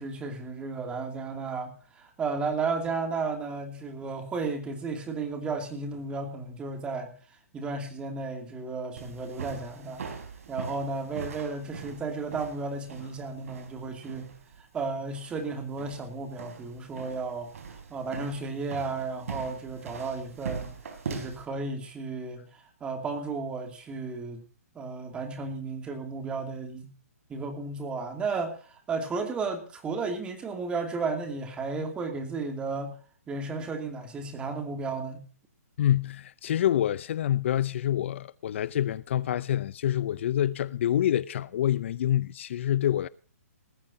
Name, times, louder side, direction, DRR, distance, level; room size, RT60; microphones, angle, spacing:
voice 1, 0.0-7.2 7.5-10.1 10.5-14.4 14.7-20.7 21.1-24.4 24.7-26.9 27.3-32.9 33.3-35.3, right 4 dB, 10° right, 2.5 m, -33 dB
sound 1, 9.0-21.5, right 6 dB, 60° right, 4.6 m, -41 dB
voice 2, 35.8-43.1, left 11 dB, 50° left, 0.6 m, -27 dB
19.5 x 15.0 x 2.8 m
hypercardioid pair, 155°, 9 cm